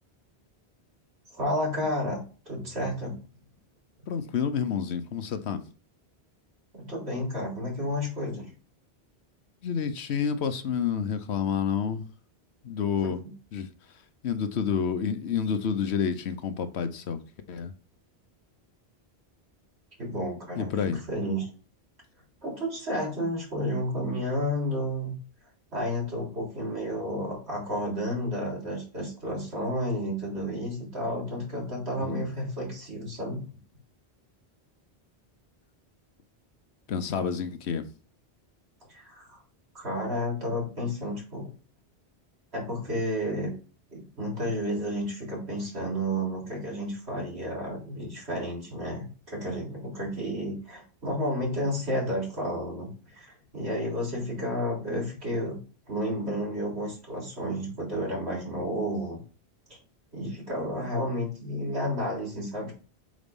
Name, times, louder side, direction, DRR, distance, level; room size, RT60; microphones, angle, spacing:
voice 1, 1.4-3.2 6.7-8.5 13.0-13.2 20.0-21.5 22.4-25.1 25.7-33.4 38.9-39.4 39.7-41.5 42.5-43.5 43.9-55.6 55.9-59.2 60.1-62.7, equal, 85° right, 3.9 m, -31 dB
voice 2, 4.1-5.6 9.6-12.0 12.6-13.2 13.5-13.7 14.2-17.2 17.5-17.7 20.6-21.0 32.0-32.3 36.9-37.8, left 7 dB, 85° left, 1.1 m, -29 dB
6.4 x 4.1 x 5.3 m
omnidirectional pair, 1.1 m